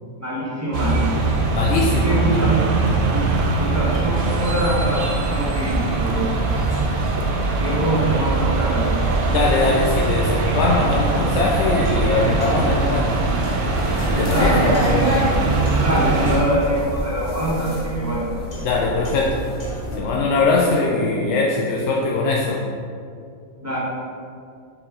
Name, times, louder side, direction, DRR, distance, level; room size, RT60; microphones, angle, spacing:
voice 1, 0.2-1.0 2.0-2.6 3.1-3.3 3.6-6.5 7.6-8.8 14.3-15.2 15.8-18.2 23.6-23.8, right 1 dB, 10° right, -7 dB, 1.2 m, -24 dB
sound 1, 0.7-16.4, right 3 dB, 50° right, 0.7 m, -21 dB
voice 2, 1.5-2.4 9.3-13.1 14.2-14.5 18.6-19.4 20.0-22.6, left 3 dB, 65° left, -2 dB, 0.7 m, -21 dB
sound 2, 3.9-20.2, right 2 dB, 85° left, 2.0 m, -40 dB
sound 3, 13.7-20.0, equal, 40° left, 1.1 m, -26 dB
6.0 x 4.4 x 3.7 m, 2.4 s
omnidirectional pair, 1.5 m